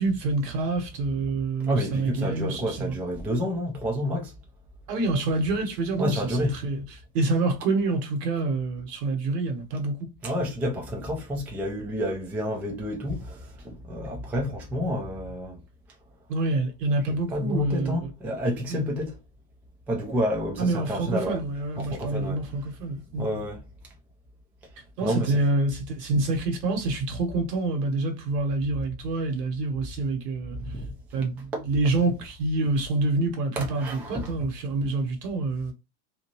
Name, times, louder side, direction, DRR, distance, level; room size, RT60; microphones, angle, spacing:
voice 1, 0.0-3.0 4.9-6.8 7.1-10.1 16.3-18.0 18.7-18.9 20.6-23.5 25.0-30.6 31.1-35.7, right 2 dB, 75° right, 1.3 m, -27 dB
voice 2, 1.6-4.3 6.0-6.6 10.2-15.6 17.0-19.2 19.9-21.4 21.8-22.4 23.1-23.6 25.0-25.3 30.5-31.0 31.5-31.7 33.6-34.3, equal, 5° right, 0.3 m, -29 dB
2.7 x 2.4 x 2.9 m
hypercardioid pair, 100°, 48 cm